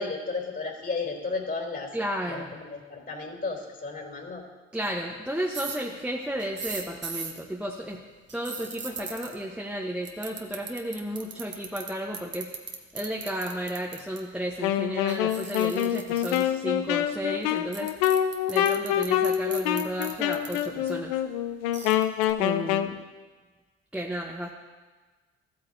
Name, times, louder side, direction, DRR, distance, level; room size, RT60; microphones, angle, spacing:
voice 1, 0.0-1.9 2.2-4.4, left 4 dB, 40° left, -1 dB, 3.3 m, -33 dB
voice 2, 1.9-2.6 4.7-8.0 8.3-12.5 12.9-17.9 18.5-21.2 22.4-23.0 23.9-24.5, right 1 dB, 5° right, -2 dB, 1.0 m, -33 dB
sound 1, 5.5-5.8 6.4-7.4 8.3-9.3 10.1-11.9 12.1-14.2 15.1-16.5 17.4-17.5 17.7-20.9 21.7-22.3, right 5 dB, 40° right, 1.3 m, -37 dB
Wind instrument woodwind instrument, 14.6-22.9, left 11 dB, 85° left, 0.5 m, -26 dB
14.5 x 8.6 x 2.8 m, 1.3 s
hypercardioid pair, 55°, 29 cm